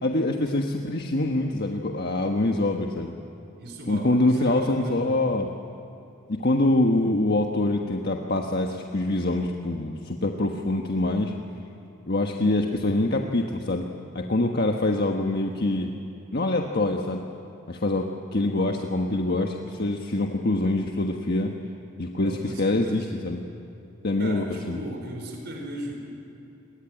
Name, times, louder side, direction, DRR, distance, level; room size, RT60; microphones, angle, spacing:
voice 1, 0.0-3.1 3.9-5.5 6.3-11.3 12.1-13.9 14.1-15.9 16.3-17.2 17.7-21.5 22.0-23.4 24.0-24.8, left 2 dB, 55° left, 2 dB, 1.4 m, -25 dB
voice 2, 3.5-5.2 22.2-23.1 24.2-25.9, equal, 55° right, 2 dB, 4.8 m, -37 dB
28.0 x 21.5 x 9.1 m, 3.0 s
head